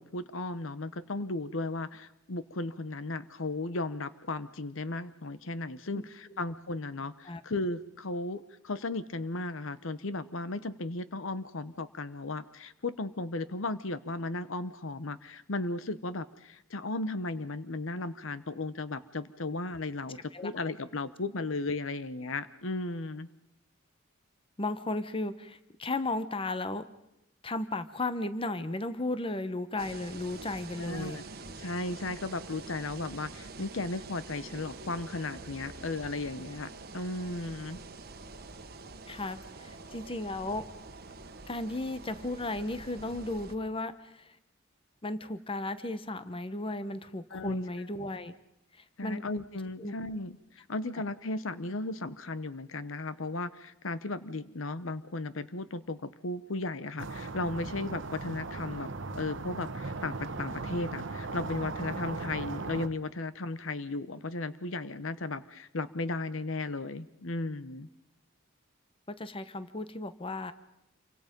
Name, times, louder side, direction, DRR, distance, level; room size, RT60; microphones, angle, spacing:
voice 1, 0.0-23.3 30.8-31.2 31.6-37.8 47.3-47.6 49.0-67.9, left 2 dB, 75° left, 14 dB, 0.9 m, -35 dB
voice 2, 24.6-26.8 27.4-31.2 39.1-40.6 41.5-44.3 45.0-48.3 49.0-49.2 49.8-49.9 69.1-70.5, left 2 dB, 25° left, 12 dB, 1.0 m, -35 dB
sound 1, 29.8-43.6, right 3 dB, 50° right, 1.4 m, -46 dB
sound 2, 57.0-62.9, right 3 dB, 65° right, 1.1 m, -38 dB
28.0 x 24.0 x 5.3 m, 0.84 s
head